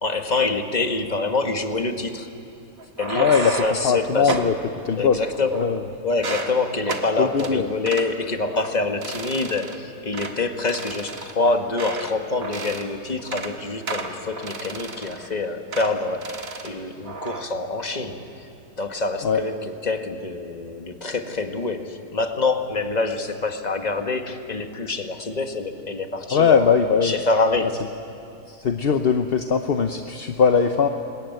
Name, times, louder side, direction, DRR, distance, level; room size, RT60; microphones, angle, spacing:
voice 1, 0.0-2.3 3.0-4.4 5.0-5.6 6.0-16.4 16.6-18.5 18.8-27.7, left 3 dB, 25° left, 5 dB, 1.5 m, -26 dB
sound 1, 2.8-3.9 4.3-4.5 5.2-5.8 6.1-6.5 6.9-7.1 7.4-7.5 7.9-8.1 8.5-8.7 9.0-9.8 10.1-10.3 10.7-12.1 12.4-12.9 13.2-13.5 13.9-15.3 15.7-15.9 16.2-16.7 17.1-17.4, right 3 dB, 55° right, 2.1 m, -32 dB
voice 2, 3.1-3.5 3.8-4.5 4.8-5.2 5.5-5.8 7.2-7.7 19.2-19.4 26.3-27.2 28.5-30.9, left 6 dB, 50° left, 6 dB, 0.8 m, -20 dB
25.0 x 21.0 x 9.3 m, 2.6 s
omnidirectional pair, 1.7 m